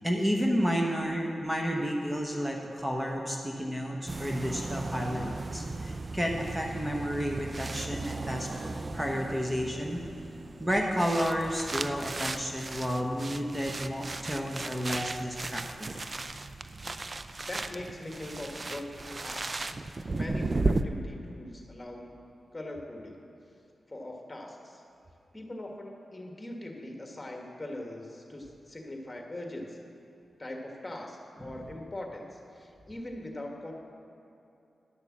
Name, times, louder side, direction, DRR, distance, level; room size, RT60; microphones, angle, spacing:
voice 1, 0.0-10.0 10.6-16.0, equal, 10° right, 0 dB, 1.1 m, -31 dB
sound 1, 4.1-20.8, right 3 dB, 40° right, 0.4 m, -36 dB
voice 2, 17.5-19.7 20.1-22.2 22.5-23.2 23.9-24.8 25.3-29.9 30.4-33.7, left 1 dB, 25° left, 1 dB, 1.6 m, -41 dB
11.0 x 6.5 x 7.4 m, 2.7 s
cardioid pair, 65°, 0 cm